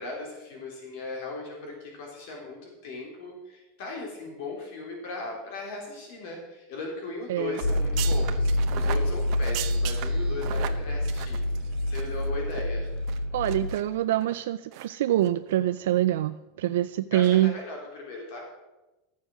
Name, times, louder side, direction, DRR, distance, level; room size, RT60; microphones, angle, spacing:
voice 1, 0.0-11.4 11.9-12.9 17.1-18.5, left 3 dB, 60° left, 0 dB, 3.3 m, -38 dB
sound 1, 7.5-12.2 12.5-12.6 13.1-13.8 14.2-14.4 14.7-14.9 15.2-15.3, right 13 dB, 45° right, 0.9 m, -38 dB
sound 2, 7.6-13.7, left 1 dB, 45° left, 2.6 m, -27 dB
voice 2, 13.3-17.5, right 13 dB, 85° right, 10 dB, 0.4 m, -25 dB
14.0 x 7.4 x 6.2 m, 1.0 s
supercardioid pair, 155°, 0 cm